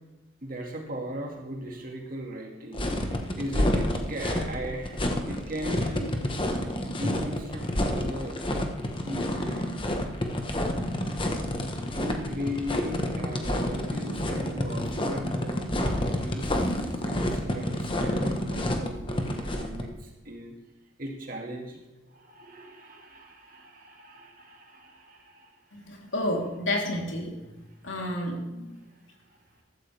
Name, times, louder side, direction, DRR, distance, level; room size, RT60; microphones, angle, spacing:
voice 1, 0.4-6.2 6.9-8.4 9.0-9.8 11.9-20.5 21.0-21.8 22.1-25.9 28.9-29.4, equal, 45° right, 1 dB, 2.1 m, -38 dB
sound 1, 2.7-19.8, left 1 dB, 25° left, 1.3 m, -29 dB
voice 2, 25.7-27.3 27.8-28.8, left 1 dB, 85° left, -1 dB, 3.5 m, -30 dB
15.5 x 13.0 x 3.5 m, 1.1 s
head